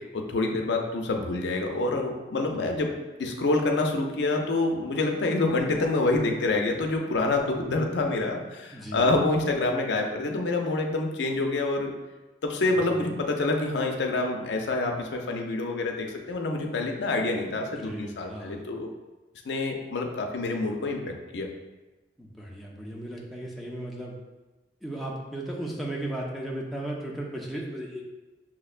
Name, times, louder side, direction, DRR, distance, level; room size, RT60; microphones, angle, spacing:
voice 1, 0.1-2.9 3.2-11.9 12.4-18.9 19.5-21.5, left 2 dB, 85° left, 2 dB, 0.5 m, -27 dB
voice 2, 2.5-2.8 8.7-9.1 12.9-13.1 17.4-18.7 22.2-24.1 24.8-28.0, right 1 dB, ahead, -3 dB, 0.4 m, -36 dB
5.9 x 2.1 x 2.4 m, 1.1 s
head